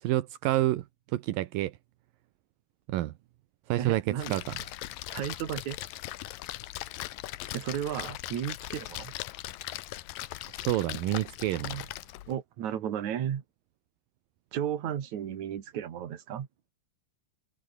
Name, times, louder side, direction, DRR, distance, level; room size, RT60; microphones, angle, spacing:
voice 1, 0.0-1.8 2.9-3.1 3.7-4.6 10.5-11.9, right 15 dB, 75° right, 2.1 m, -29 dB
voice 2, 3.8-4.4 5.1-5.8 7.5-9.1 12.3-13.4 14.5-16.5, right 9 dB, 50° right, 2.7 m, -34 dB
Splash splatter, 4.2-12.3, left 16 dB, 85° left, 1.9 m, -39 dB
omnidirectional pair, 5.2 m